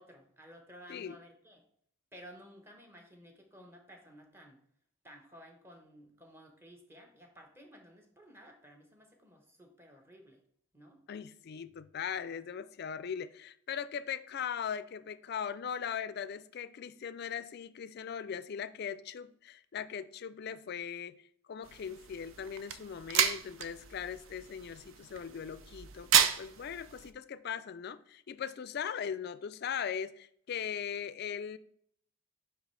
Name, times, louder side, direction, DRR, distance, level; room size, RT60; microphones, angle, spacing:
voice 1, 0.0-1.6 2.1-4.6 5.0-10.4 10.7-11.0, equal, 10° right, 1.0 m, -55 dB
voice 2, 11.1-21.2 21.5-31.6, left 7 dB, 50° left, 0.3 m, -39 dB
sound 1, 21.6-27.1, right 9 dB, 65° right, 0.5 m, -32 dB
9.8 x 3.3 x 3.2 m
head